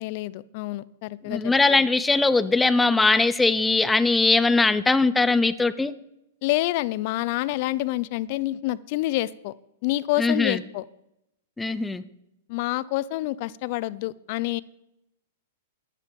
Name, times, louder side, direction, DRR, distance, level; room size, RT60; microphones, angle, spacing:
voice 1, 0.0-1.4 6.4-9.5 9.8-10.8 12.5-14.6, left 17 dB, 50° left, 20 dB, 0.6 m, -27 dB
voice 2, 1.2-5.9 10.2-10.6 11.6-12.0, left 3 dB, 10° left, 15 dB, 0.7 m, -21 dB
12.0 x 10.5 x 5.3 m, 0.84 s
hypercardioid pair, 130°, 0 cm